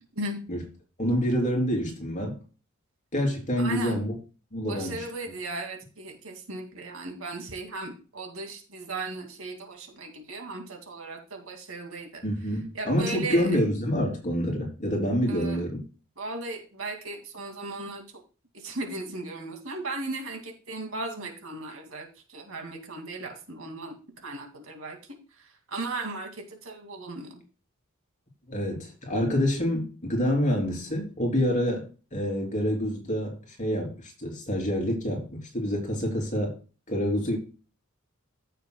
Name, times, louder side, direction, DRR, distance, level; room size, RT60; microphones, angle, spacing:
voice 1, 1.0-2.4 3.1-4.1 4.5-5.0 12.2-15.8 28.5-36.6 36.9-37.4, equal, 35° left, 0 dB, 3.5 m, -27 dB
voice 2, 3.6-4.0 4.7-12.2 12.7-13.6 15.3-15.6 16.2-18.0 18.5-25.0 25.3-27.4, right 2 dB, 70° right, 3 dB, 2.4 m, -37 dB
15.0 x 6.6 x 2.3 m, 0.34 s
head